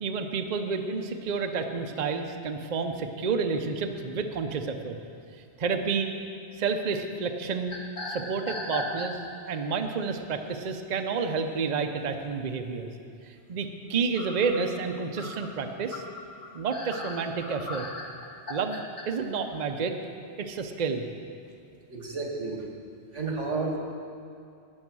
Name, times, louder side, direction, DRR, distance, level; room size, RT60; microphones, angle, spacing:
voice 1, 0.0-5.0 5.6-6.1 6.6-7.8 8.1-9.2 9.5-12.9 13.5-16.0 16.5-17.9 18.5-19.9 20.4-21.1, right 5 dB, 45° right, 5 dB, 0.7 m, -30 dB
sound 1, 7.7-9.5 10.0-10.2 11.7-11.8 12.2-12.3 14.2-19.1, left 1 dB, 40° left, 1.4 m, -37 dB
voice 2, 21.9-22.6 23.1-23.8, right 3 dB, 90° right, 1 dB, 1.9 m, -31 dB
17.5 x 6.3 x 6.1 m, 2.4 s
omnidirectional pair, 1.2 m